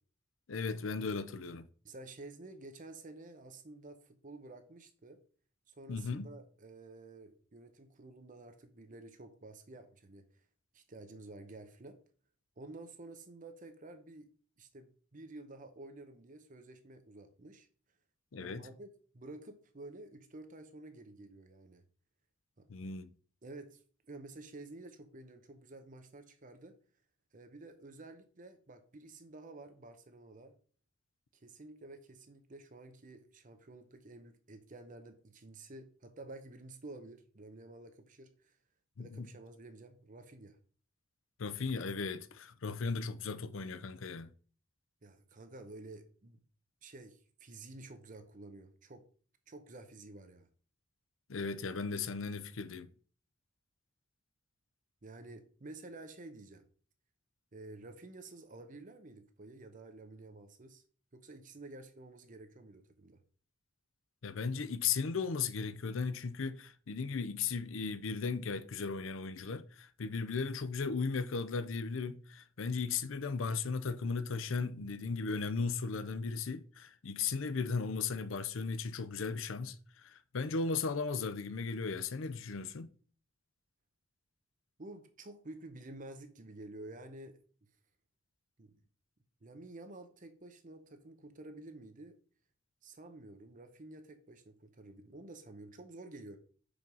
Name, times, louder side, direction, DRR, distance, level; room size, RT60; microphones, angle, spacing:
voice 1, 0.5-1.7 5.9-6.3 18.3-18.7 22.7-23.1 39.0-39.3 41.4-44.3 51.3-52.9 64.2-82.9, left 4 dB, 75° left, 0.6 m, -36 dB
voice 2, 1.8-5.2 5.7-10.4 10.7-12.0 12.6-14.3 14.6-17.7 18.4-18.9 19.1-21.8 22.6-22.7 23.4-23.8 24.1-26.8 27.3-30.5 31.3-38.6 39.0-40.6 45.0-46.4 46.8-49.0 49.5-50.5 55.0-56.6 57.5-60.8 61.1-63.2 84.8-87.4 88.6-88.8 89.4-92.2 92.8-96.4, right 2 dB, 40° right, 0.8 m, -51 dB
5.3 x 5.1 x 6.1 m
head